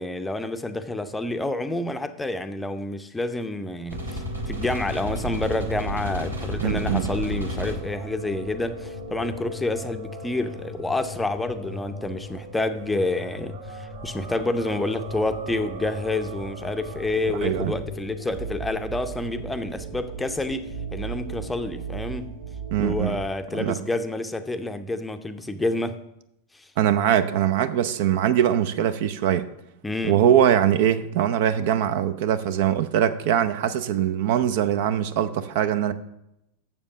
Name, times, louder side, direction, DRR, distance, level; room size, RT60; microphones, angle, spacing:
voice 1, 0.0-22.3 22.8-26.0 26.5-26.7 29.8-30.2, left 2 dB, 10° left, 0.6 m, -28 dB
sound 1, 3.9-23.3, right 1 dB, 80° right, 1.7 m, -34 dB
voice 2, 6.6-7.1 17.4-17.7 22.7-23.2 23.5-23.7 26.8-29.5 30.0-35.9, right 10 dB, 50° right, 0.5 m, -22 dB
7.1 x 7.1 x 6.3 m
figure-of-eight pair, 90°, 0 cm